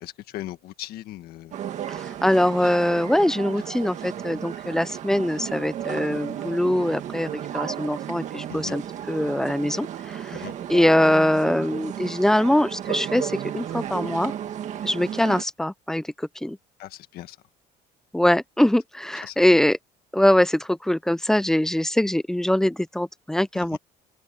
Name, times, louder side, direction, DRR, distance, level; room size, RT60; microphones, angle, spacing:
voice 1, 0.0-1.5 2.5-2.6 8.5-8.8 10.3-10.5 16.8-17.4 19.2-19.4 23.5-23.8, left 14 dB, 60° left, 1.7 m, -38 dB
sound 1, 1.5-15.4, right 10 dB, 40° right, 1.9 m, -34 dB
voice 2, 1.9-7.3 7.5-14.3 14.8-16.6 18.1-19.8 20.1-23.8, left 1 dB, 5° left, 0.5 m, -22 dB
open air
cardioid pair, 180°, 18 cm